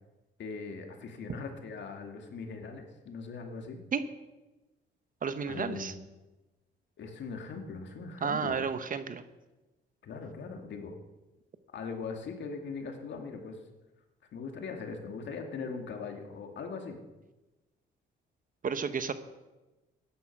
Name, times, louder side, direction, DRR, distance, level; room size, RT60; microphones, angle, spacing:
voice 1, 0.4-3.8 5.5-6.0 7.0-8.6 10.0-11.0 11.7-13.6 14.3-17.0, left 4 dB, 65° left, 4 dB, 2.3 m, -40 dB
voice 2, 5.2-5.9 8.2-9.2 18.6-19.1, right 6 dB, 45° right, 11 dB, 1.0 m, -32 dB
14.0 x 10.5 x 6.0 m, 1.1 s
cardioid pair, 90°, 20 cm